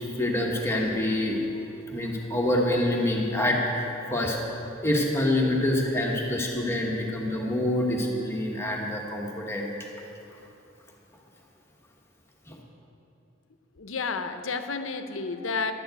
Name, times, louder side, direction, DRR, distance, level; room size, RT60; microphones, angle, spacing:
voice 1, 0.2-1.4 1.9-4.6 4.8-9.7 12.5-12.6, left 1 dB, 15° left, -2 dB, 1.2 m, -26 dB
voice 2, 13.8-15.7, left 4 dB, 90° left, 8 dB, 0.7 m, -31 dB
11.5 x 7.5 x 8.1 m, 2.8 s
head